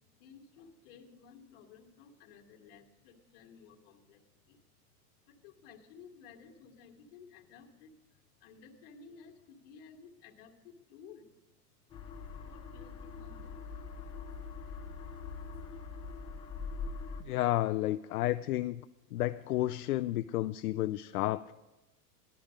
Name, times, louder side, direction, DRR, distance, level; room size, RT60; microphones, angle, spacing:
voice 1, 0.2-4.6 5.3-7.9 8.4-11.3 12.4-13.6 14.0-14.6 17.1-17.2, left 6 dB, 35° left, 1 dB, 1.8 m, -55 dB
sound 1, 11.9-17.2, left 4 dB, 10° left, 0.9 m, -43 dB
voice 2, 17.2-18.8 19.1-21.5, left 15 dB, 70° left, 11 dB, 0.5 m, -31 dB
16.5 x 12.0 x 5.1 m, 1.1 s
supercardioid pair, 170°, 47 cm